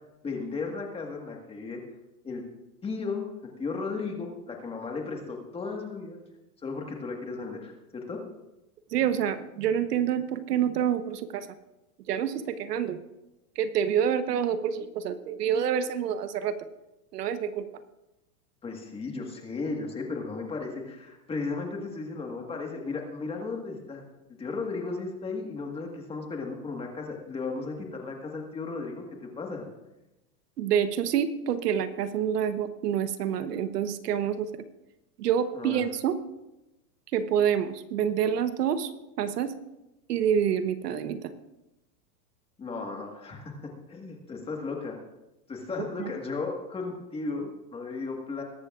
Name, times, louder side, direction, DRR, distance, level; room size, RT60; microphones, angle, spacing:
voice 1, 0.2-1.8 2.2-2.4 2.8-6.2 6.6-8.2 18.6-24.0 24.4-29.7 35.5-35.8 42.6-45.0 45.5-48.4, left 4 dB, 10° left, 2 dB, 1.6 m, -35 dB
voice 2, 8.9-11.5 12.1-13.0 13.6-16.5 17.1-17.7 30.6-34.5 35.2-36.2 37.1-38.9 39.2-39.5 40.1-41.3 46.0-46.1, right 8 dB, 80° right, 11 dB, 1.2 m, -27 dB
21.5 x 11.5 x 2.5 m, 0.96 s
supercardioid pair, 150°, 47 cm